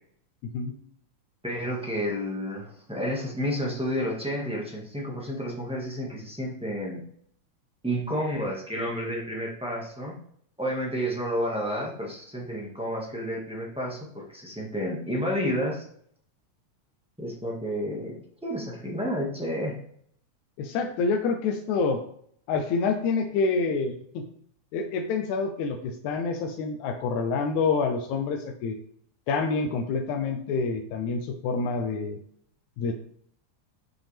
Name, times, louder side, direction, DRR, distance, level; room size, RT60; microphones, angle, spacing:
voice 1, 1.4-7.0 7.8-10.2 10.6-15.8 17.2-18.2 18.4-19.8, equal, 5° right, -4 dB, 0.4 m, -30 dB
voice 2, 20.6-22.0 22.5-24.2 24.7-28.8 29.3-32.2 32.8-32.9, left 4 dB, 80° left, 3 dB, 2.1 m, -27 dB
9.1 x 6.0 x 3.4 m, 0.64 s
omnidirectional pair, 3.4 m